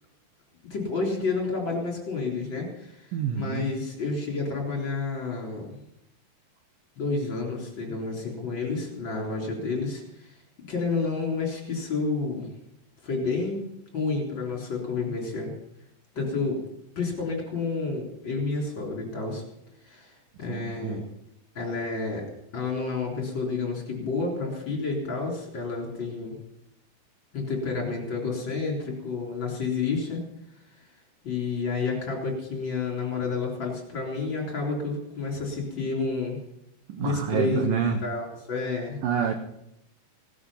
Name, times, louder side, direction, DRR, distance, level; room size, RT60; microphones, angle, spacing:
voice 1, 0.7-5.8 7.0-10.3 10.7-12.5 13.0-13.7 13.9-15.5 16.1-16.6 17.0-19.4 19.8-21.0 21.5-22.3 22.5-26.4 27.3-30.2 31.2-36.4 37.0-39.0, left 4 dB, 30° left, 0 dB, 4.0 m, -30 dB
voice 2, 3.1-3.7 20.5-21.0 36.9-38.0 39.0-39.3, right 8 dB, 70° right, 6 dB, 2.2 m, -27 dB
18.0 x 12.5 x 5.7 m, 0.80 s
omnidirectional pair, 5.0 m